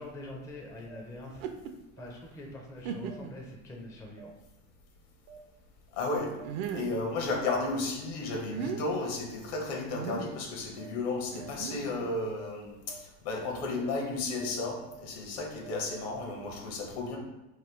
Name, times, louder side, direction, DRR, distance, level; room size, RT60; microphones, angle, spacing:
voice 1, 0.0-1.5 2.0-4.3, left 1 dB, 10° left, 0 dB, 0.4 m, -44 dB
sound 1, 0.9-1.0 2.0-2.1 3.1-3.2 4.2-4.3 5.3-5.4 6.4-6.5 7.5-7.6 8.6-8.7 9.7-9.8 10.8-10.9 11.4-11.5 11.9-12.0 12.4-12.5 12.9-13.0 13.4-13.5 13.9-14.0 14.4-14.5 14.9-15.0 15.4-16.5, right 8 dB, 80° right, 0.9 m, -49 dB
sound 2, 1.3-1.7 2.3-2.4 2.8-3.4 4.1-4.2 6.4-7.0 8.3-8.8 9.9-10.3 11.3-12.2, right 6 dB, 60° right, 0.5 m, -37 dB
voice 2, 5.9-6.3 6.7-17.2, left 3 dB, 65° left, 1 dB, 1.0 m, -33 dB
3.1 x 2.3 x 3.3 m, 1.0 s
hypercardioid pair, 85°, 43 cm